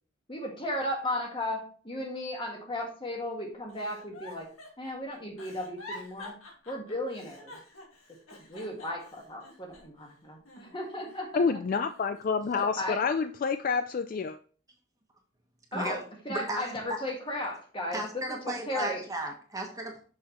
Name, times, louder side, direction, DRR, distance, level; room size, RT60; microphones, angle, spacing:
voice 1, 0.3-4.5 4.8-6.4 6.6-7.6 8.1-11.6 12.5-13.0 15.7-19.1, left 1 dB, 25° left, 1.5 m, -35 dB
Giggle, 3.7-10.1 10.4-11.4 11.9-13.0 13.5-13.9, left 1 dB, 90° left, 2.0 m, -48 dB
voice 2, 11.3-14.4, left 5 dB, 45° left, 0.3 m, -28 dB
voice 3, 16.3-16.6 17.9-20.0, right 1 dB, 15° right, 1.2 m, -35 dB
6.3 x 6.1 x 3.0 m
head